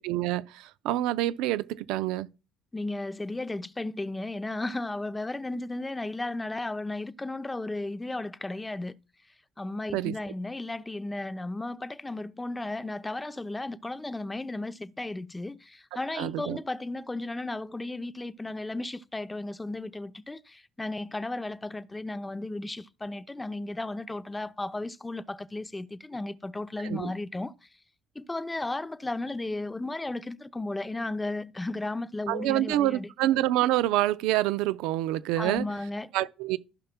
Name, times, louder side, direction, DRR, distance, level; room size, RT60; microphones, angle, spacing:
voice 1, 0.0-2.3 9.9-10.1 16.2-16.6 26.8-27.1 32.3-35.6 36.1-36.6, right 15 dB, 85° right, 0.5 m, -27 dB
voice 2, 2.7-8.9 9.6-27.7 28.1-33.1 35.4-36.1, left 2 dB, 10° left, 0.6 m, -34 dB
15.5 x 5.6 x 2.2 m
cardioid pair, 115°, 0 cm